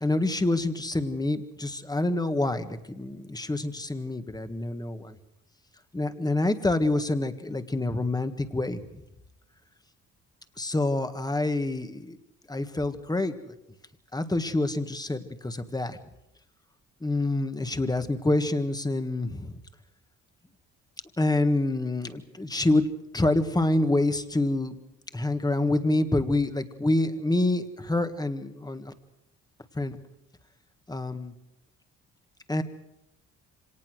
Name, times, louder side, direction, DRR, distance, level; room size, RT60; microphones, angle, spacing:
voice 1, 0.0-5.2 5.9-8.8 10.6-12.2 12.5-13.6 14.1-16.0 17.0-19.5 21.2-22.9 23.1-24.7 25.1-28.9 29.7-30.0 30.9-31.3 32.5-32.6, left 2 dB, 15° left, 9 dB, 1.7 m, -27 dB
25.5 x 18.5 x 6.4 m, 0.84 s
cardioid pair, 90°, 30 cm